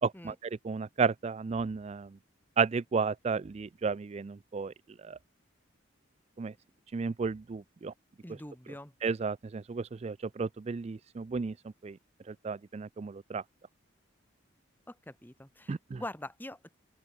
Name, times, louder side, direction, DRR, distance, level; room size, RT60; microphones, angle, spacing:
voice 1, 0.0-2.1 2.6-4.7 5.0-5.2 6.4-6.5 6.9-7.9 9.0-11.5 11.8-12.0 12.3-13.4 15.7-16.0, right 5 dB, 30° right, 0.3 m, -33 dB
voice 2, 8.2-8.9 14.9-16.8, left 1 dB, 10° left, 1.8 m, -44 dB
open air
head